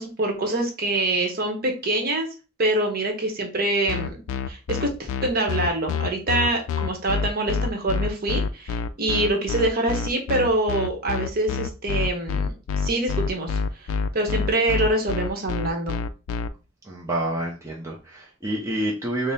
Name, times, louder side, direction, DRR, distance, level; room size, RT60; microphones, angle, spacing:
voice 1, 0.0-2.3 2.6-4.2 4.5-12.5 12.8-16.0, right 2 dB, 45° right, 3 dB, 0.9 m, -25 dB
sound 1, 3.9-16.5, left 5 dB, 80° left, 0.3 m, -26 dB
voice 2, 16.8-19.3, right 1 dB, 15° right, -3 dB, 0.6 m, -28 dB
3.5 x 2.0 x 4.0 m, 0.32 s
head